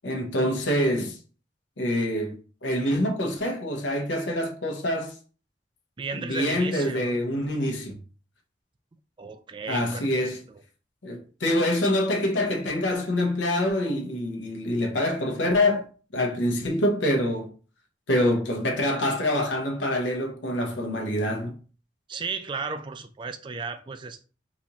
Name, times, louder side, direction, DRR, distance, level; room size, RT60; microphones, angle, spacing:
voice 1, 0.0-1.2 1.8-2.4 2.6-5.2 6.1-8.0 9.7-10.4 11.0-15.9 16.1-17.5 18.1-21.6, left 1 dB, 90° left, 0.8 m, -25 dB
voice 2, 6.0-7.2 9.2-10.6 22.1-24.2, right 4 dB, 25° right, 0.3 m, -35 dB
4.0 x 2.5 x 2.9 m
head